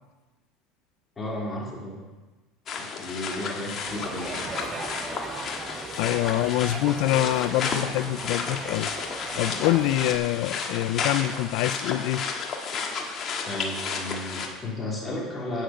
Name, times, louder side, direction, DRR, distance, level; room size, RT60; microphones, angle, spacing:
voice 1, 1.2-2.0 2.8-4.5 13.5-15.6, left 1 dB, 20° left, -4 dB, 2.9 m, -34 dB
sound 1, 2.7-14.5, left 5 dB, 40° left, 1.6 m, -32 dB
Crowd, 3.9-10.2, right 4 dB, 25° right, 0.9 m, -38 dB
voice 2, 6.0-8.9 9.4-12.2, left 15 dB, 70° left, 17 dB, 0.4 m, -25 dB
8.7 x 7.7 x 6.3 m, 1.2 s
supercardioid pair, 130°, 0 cm